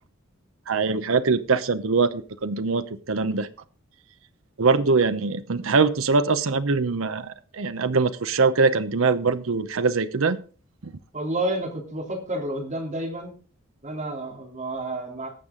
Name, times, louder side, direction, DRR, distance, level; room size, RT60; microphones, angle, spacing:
voice 1, 0.7-3.5 4.6-10.4 10.8-10.9, right 4 dB, 70° right, 11 dB, 0.7 m, -23 dB
voice 2, 11.1-13.3 13.8-15.3, right 1 dB, 35° right, 0 dB, 3.3 m, -30 dB
18.5 x 7.4 x 3.8 m, 0.38 s
head